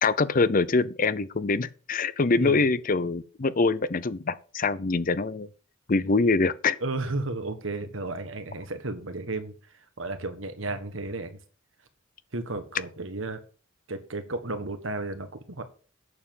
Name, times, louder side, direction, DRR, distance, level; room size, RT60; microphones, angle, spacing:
voice 1, 0.0-5.5 5.9-6.8, left 3 dB, 45° left, 0.6 m, -24 dB
voice 2, 2.4-2.7 6.8-9.5 10.0-11.3 12.3-13.4 13.9-15.6, right 2 dB, 75° right, 1.6 m, -33 dB
8.7 x 6.9 x 7.1 m
head